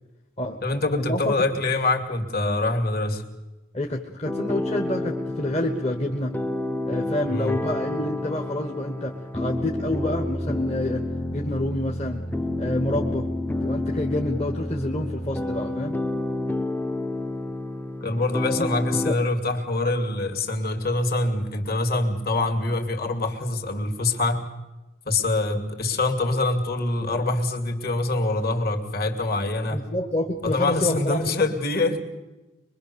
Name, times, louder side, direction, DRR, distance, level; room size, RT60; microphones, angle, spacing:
voice 1, 0.6-3.2 7.2-7.6 18.0-24.5 25.1-29.8 30.4-32.0, left 2 dB, 45° left, 3 dB, 2.7 m, -25 dB
voice 2, 3.7-6.3 6.9-11.0 11.3-12.2 12.6-13.3 13.6-16.0 18.6-18.7 19.0-19.1 29.7-31.2, left 1 dB, 30° left, 3 dB, 1.4 m, -28 dB
sound 1, 4.3-19.1, left 1 dB, 10° left, 0.7 m, -29 dB
23.5 x 23.0 x 7.0 m, 1.1 s
head